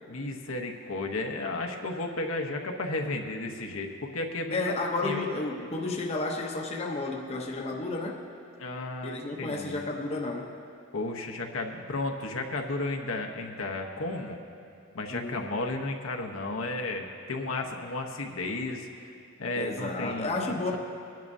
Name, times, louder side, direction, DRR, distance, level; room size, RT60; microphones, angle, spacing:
voice 1, 0.1-4.7 5.0-5.2 8.6-9.9 10.9-14.4 14.9-19.1 19.4-20.8, left 2 dB, 80° left, 2 dB, 1.0 m, -33 dB
voice 2, 4.5-8.2 9.0-10.5 15.1-15.6 19.5-20.8, left 2 dB, 30° left, 0 dB, 0.8 m, -32 dB
21.0 x 10.5 x 2.7 m, 2.5 s
head